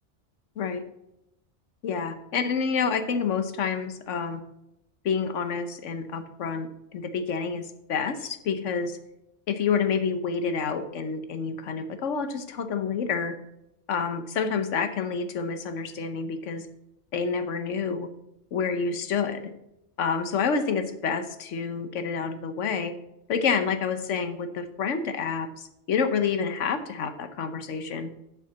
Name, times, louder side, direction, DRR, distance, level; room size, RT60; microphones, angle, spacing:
voice 1, 1.8-4.4 5.0-9.0 9.5-13.3 13.9-16.7 17.1-18.1 18.5-19.5 20.0-22.9 23.3-28.1, left 6 dB, 90° left, 10 dB, 1.2 m, -28 dB
7.4 x 5.8 x 7.0 m, 0.85 s
omnidirectional pair, 1.2 m